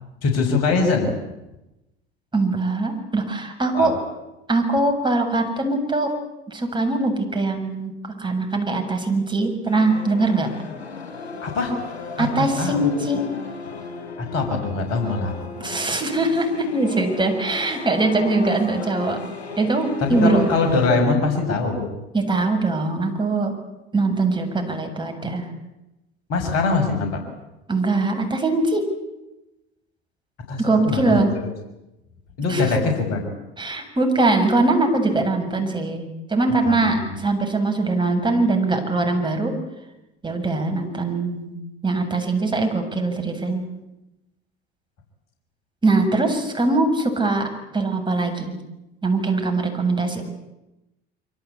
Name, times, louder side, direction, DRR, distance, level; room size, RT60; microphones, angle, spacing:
voice 1, 0.2-1.1 3.7-3.9 11.4-11.7 12.2-12.9 14.2-15.3 20.0-21.9 26.3-27.2 30.5-31.5 32.4-33.3 36.6-37.1, left 3 dB, 50° left, 4 dB, 6.5 m, -22 dB
voice 2, 2.3-4.0 4.5-6.1 6.5-7.9 8.2-10.5 12.2-13.3 15.6-19.2 19.6-20.5 22.1-23.5 23.9-25.4 27.7-28.8 30.6-31.3 32.5-32.7 33.6-36.0 36.3-39.6 40.2-43.7 45.8-47.5 47.7-48.6 49.0-50.2, right 2 dB, 15° right, 4 dB, 7.5 m, -22 dB
sound 1, 9.7-20.9, left 4 dB, 80° left, 5.0 m, -36 dB
26.5 x 25.5 x 8.6 m, 0.95 s
figure-of-eight pair, 65°, 32 cm